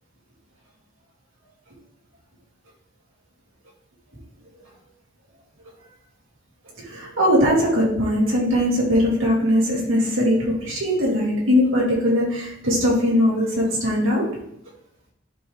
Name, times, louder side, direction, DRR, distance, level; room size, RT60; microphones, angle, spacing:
voice 1, 6.9-14.3, equal, 80° right, -4 dB, 2.7 m, -20 dB
10.5 x 4.0 x 3.5 m, 0.71 s
head